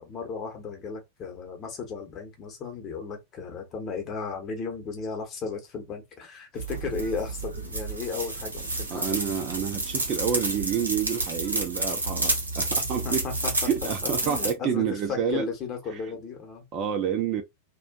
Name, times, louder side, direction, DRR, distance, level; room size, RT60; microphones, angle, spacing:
voice 1, 0.0-9.2 12.8-13.5 14.2-14.8 15.1-16.6, left 5 dB, 30° left, 0.9 m, -35 dB
sound 1, 6.6-14.5, right 2 dB, 80° right, 0.8 m, -30 dB
voice 2, 8.9-13.2 13.7-15.5 16.7-17.4, right 8 dB, 35° right, 0.4 m, -28 dB
2.5 x 2.2 x 2.3 m
figure-of-eight pair, 90°, 0 cm